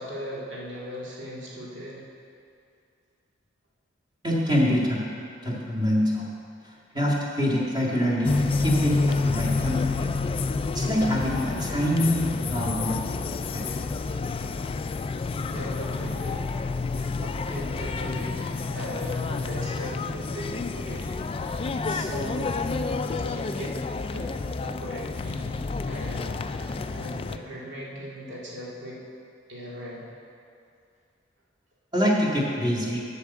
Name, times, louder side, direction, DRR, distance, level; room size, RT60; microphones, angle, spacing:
voice 1, 0.0-2.1 15.5-16.5 17.0-23.8 24.1-24.3 24.6-25.5 25.9-29.0 29.5-30.1, equal, 70° right, -5 dB, 2.2 m, -39 dB
voice 2, 4.2-5.0 5.4-6.3 6.9-10.1 10.7-13.0 13.5-13.6 31.9-33.0, equal, 25° right, -4 dB, 1.9 m, -25 dB
sound 1, 8.2-27.4, left 3 dB, 30° left, 0.3 m, -29 dB
8.3 x 7.2 x 6.8 m, 2.4 s
head